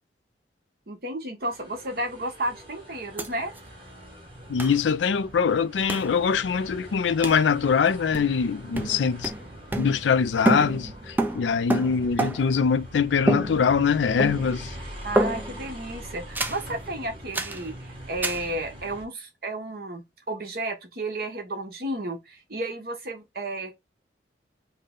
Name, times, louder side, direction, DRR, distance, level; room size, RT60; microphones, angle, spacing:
voice 1, 0.9-3.5 8.9-9.1 15.0-23.8, right 1 dB, 55° right, 1.1 m, -33 dB
sound 1, 1.4-19.1, equal, 30° right, 1.6 m, -43 dB
sound 2, 3.2-3.3 3.6-3.7 4.6-4.8 5.9-6.1 7.2-7.5 8.1-8.5 8.7-10.2 10.4-12.6 13.3-13.9 14.2-14.7 15.2-15.7 16.3-16.7 17.3-17.6 18.2-18.5, right 1 dB, 10° right, 0.4 m, -28 dB
voice 2, 4.5-9.3 9.8-14.7, left 6 dB, 85° left, 0.4 m, -23 dB
5.5 x 2.2 x 3.7 m
head